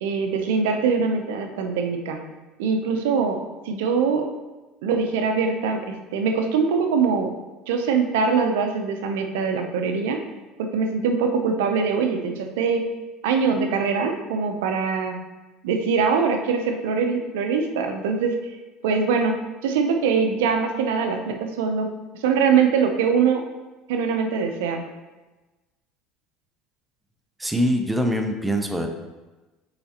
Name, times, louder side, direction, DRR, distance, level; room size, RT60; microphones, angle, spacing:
voice 1, 0.0-2.2 2.6-4.3 4.8-7.3 7.7-10.2 10.6-12.9 13.2-15.2 15.6-18.5 18.8-23.5 23.9-24.8, right 5 dB, 85° right, 5 dB, 0.7 m, -23 dB
voice 2, 27.4-28.9, equal, 5° right, 4 dB, 0.7 m, -23 dB
6.8 x 4.8 x 2.9 m, 1.2 s
supercardioid pair, 110°, 0 cm